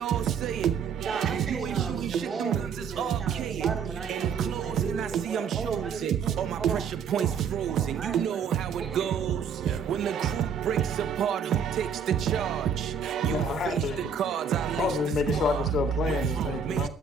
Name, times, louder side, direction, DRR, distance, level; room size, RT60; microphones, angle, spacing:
voice 1, 0.0-1.3 2.0-2.5 3.0-3.7 4.1-5.4 6.0-13.3 14.2-14.8 16.7-16.9, right 9 dB, 75° right, 0.6 m, -28 dB
voice 2, 1.0-7.4 7.7-8.5 8.8-9.1 10.1-10.4, right 3 dB, 40° right, 7.7 m, -37 dB
voice 3, 13.2-14.2 14.8-16.9, left 6 dB, 65° left, 2.4 m, -29 dB
23.0 x 11.5 x 2.3 m
cardioid pair, 90°, 0 cm